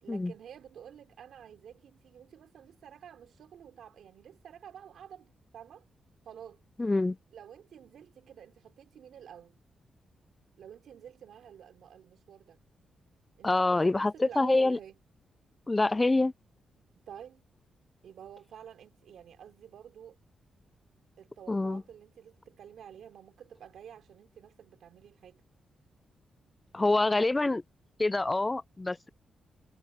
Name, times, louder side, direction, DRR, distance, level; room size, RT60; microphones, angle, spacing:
voice 1, 0.0-5.9 6.2-6.6 7.3-9.5 10.6-12.6 13.4-15.0 17.1-17.4 18.0-20.2 21.2-25.4, right 9 dB, 80° right, 3.2 m, -50 dB
voice 2, 6.8-7.2 13.4-14.8 15.7-16.3 21.5-21.8 26.7-27.6 28.0-29.1, left 2 dB, 15° left, 0.3 m, -26 dB
wide cardioid pair, 130°, 0 cm